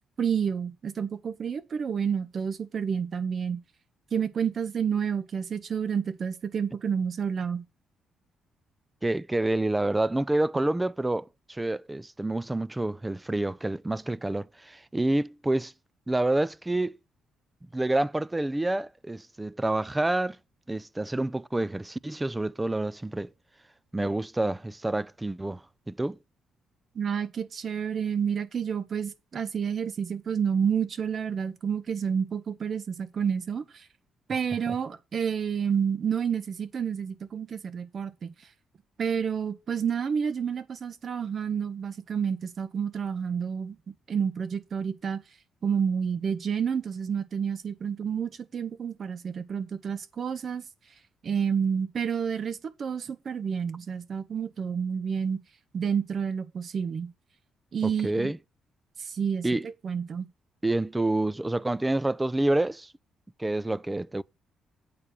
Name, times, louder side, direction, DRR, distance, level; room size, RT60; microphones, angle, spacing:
voice 1, 0.2-3.6 4.1-7.6 26.9-33.8 34.3-38.3 39.0-43.8 44.1-45.2 45.6-50.6 51.2-55.4 55.7-57.1 57.7-58.3 59.0-60.3, right 7 dB, 50° right, 1.4 m, -29 dB
voice 2, 9.0-15.7 16.1-17.0 17.7-20.4 20.7-23.3 23.9-25.6 25.9-26.2 57.8-58.4 59.4-59.7 60.6-62.9 63.4-64.2, right 2 dB, 15° right, 0.4 m, -28 dB
8.6 x 4.7 x 6.7 m
cardioid pair, 90°, 0 cm